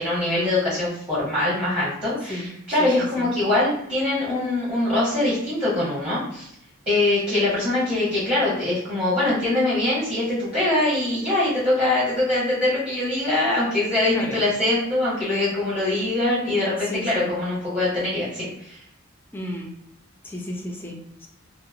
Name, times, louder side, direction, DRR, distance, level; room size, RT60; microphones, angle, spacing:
voice 1, 0.0-6.5 6.9-18.8, left 2 dB, 30° right, -9 dB, 1.0 m, -23 dB
voice 2, 2.8-3.3 14.1-14.4 16.9-17.3 19.3-19.7 20.2-21.3, left 1 dB, 10° left, 0 dB, 0.3 m, -33 dB
2.8 x 2.0 x 2.4 m, 0.75 s
head